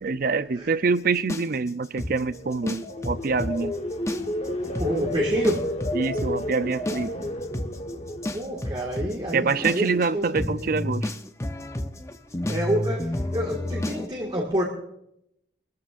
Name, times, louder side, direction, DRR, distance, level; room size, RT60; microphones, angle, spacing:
voice 1, 0.0-3.7 5.9-7.1 9.3-11.1, right 4 dB, 50° right, 0.5 m, -25 dB
sound 1, 1.3-3.5 3.9-4.5 4.7-4.9 5.4-14.1, left 1 dB, 15° left, 0.7 m, -30 dB
sound 2, 2.2-9.4 9.8-10.2, left 1 dB, 35° left, 1.3 m, -32 dB
voice 2, 4.8-5.8 8.3-10.7 12.5-14.6, equal, 30° right, 1.9 m, -28 dB
24.5 x 13.5 x 2.6 m
head